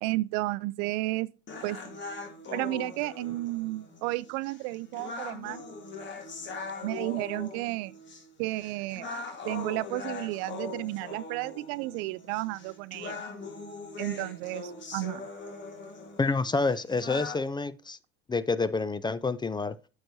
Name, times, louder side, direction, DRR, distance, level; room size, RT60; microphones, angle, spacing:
voice 1, 0.0-1.3 1.6-2.0 2.5-5.6 6.8-7.9 8.4-9.1 9.5-13.2 14.0-15.3, right 19 dB, 75° right, 0.4 m, -32 dB
sound 1, 1.5-17.5, left 3 dB, 40° left, 1.6 m, -41 dB
voice 2, 16.2-18.0 18.3-19.8, left 3 dB, 15° left, 0.4 m, -28 dB
8.8 x 6.5 x 2.7 m
supercardioid pair, 80°, 29 cm